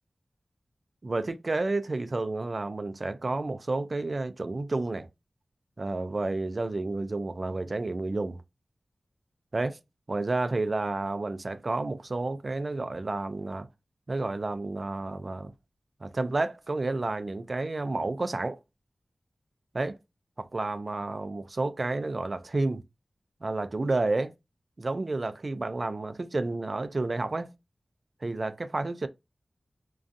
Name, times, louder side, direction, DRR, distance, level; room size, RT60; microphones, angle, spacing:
voice 1, 1.0-5.1 5.8-8.4 9.5-9.8 10.1-13.7 14.1-15.5 16.0-18.6 19.7-20.0 20.4-22.8 23.4-24.3 24.8-27.5 28.2-29.1, right 2 dB, 55° right, 0.3 m, -30 dB
2.4 x 2.3 x 2.5 m
cardioid pair, 50°, 0 cm